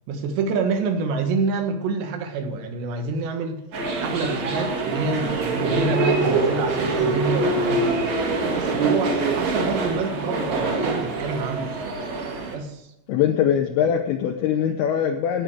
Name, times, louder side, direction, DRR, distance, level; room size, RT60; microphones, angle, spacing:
voice 1, 0.1-3.6 4.0-8.0 8.5-12.0 12.5-12.9, right 4 dB, 75° right, 5 dB, 3.5 m, -27 dB
sound 1, 3.7-12.5, right 3 dB, 50° right, 2.7 m, -24 dB
sound 2, 6.0-6.9, right 3 dB, 30° right, 2.3 m, -28 dB
voice 2, 13.1-15.4, left 9 dB, 80° left, 3 dB, 2.4 m, -22 dB
18.0 x 6.7 x 4.8 m, 0.85 s
omnidirectional pair, 5.2 m